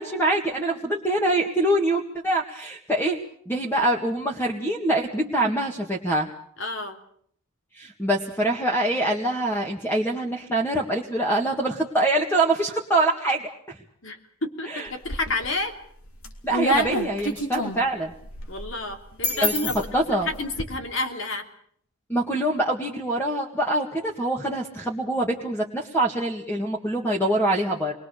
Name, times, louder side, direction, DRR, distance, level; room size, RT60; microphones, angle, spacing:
voice 1, 0.0-3.2 3.5-6.3 7.8-13.8 14.7-14.9 16.4-18.1 19.4-19.5 19.9-20.3 22.1-28.0, right 1 dB, 10° left, 0 dB, 2.0 m, -24 dB
voice 2, 6.6-7.0 14.0-15.7 18.5-21.5, left 2 dB, 60° left, 5 dB, 3.3 m, -30 dB
sound 1, 14.9-15.6 16.0-20.6, left 1 dB, 85° left, 3.0 m, -28 dB
28.0 x 22.0 x 6.7 m, 0.63 s
head